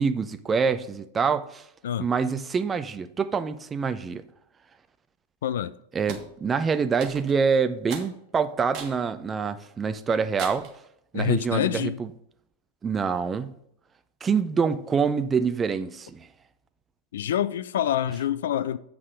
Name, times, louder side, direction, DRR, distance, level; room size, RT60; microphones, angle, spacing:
voice 1, 0.0-1.6 2.0-4.2 5.9-10.7 11.1-12.1 12.8-13.5 14.2-16.3, right 5 dB, 20° right, 0.5 m, -26 dB
voice 2, 5.4-5.7 11.1-12.0 17.1-18.8, left 10 dB, 60° left, 0.3 m, -26 dB
sound 1, 6.1-6.3 7.0-7.4 7.9-8.1 8.7-9.0 9.5-9.6 10.4-10.8, right 7 dB, 40° right, 1.4 m, -37 dB
8.6 x 3.6 x 6.1 m
figure-of-eight pair, 90°, 0 cm